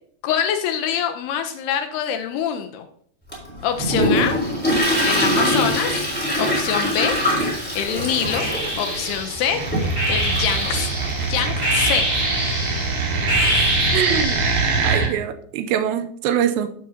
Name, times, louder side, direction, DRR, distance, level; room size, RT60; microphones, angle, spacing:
voice 1, 0.2-2.9 3.6-4.3 5.0-6.0 6.4-7.2 7.8-8.5 8.8-10.9 11.2-12.1, left 9 dB, 80° left, 6 dB, 2.4 m, -25 dB
Toilet flush, 3.3-13.5, equal, 5° left, 3.0 m, -24 dB
sound 1, 6.9-7.7 8.3-14.9, right 1 dB, 15° right, 4.7 m, -25 dB
sound 2, 9.4-15.1, right 3 dB, 60° right, 3.2 m, -24 dB
voice 2, 13.9-14.4 14.8-16.7, right 9 dB, 85° right, 9 dB, 2.7 m, -23 dB
12.5 x 8.5 x 2.7 m, 0.63 s
omnidirectional pair, 5.1 m